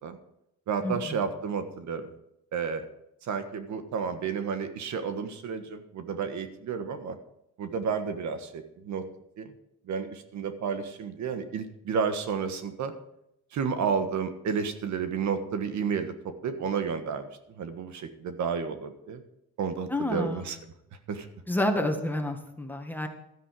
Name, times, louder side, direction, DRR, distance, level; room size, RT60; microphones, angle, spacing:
voice 1, 0.7-2.1 2.5-2.8 3.2-7.2 7.6-9.0 9.4-9.5 9.9-12.9 13.5-16.1 16.4-17.3 17.6-19.2 19.6-20.6 21.1-21.3, right 6 dB, 70° right, 8 dB, 1.4 m, -31 dB
voice 2, 19.9-20.5 21.5-23.1, left 1 dB, 5° left, 4 dB, 1.9 m, -29 dB
13.0 x 9.8 x 4.8 m, 0.80 s
cardioid pair, 90°, 30 cm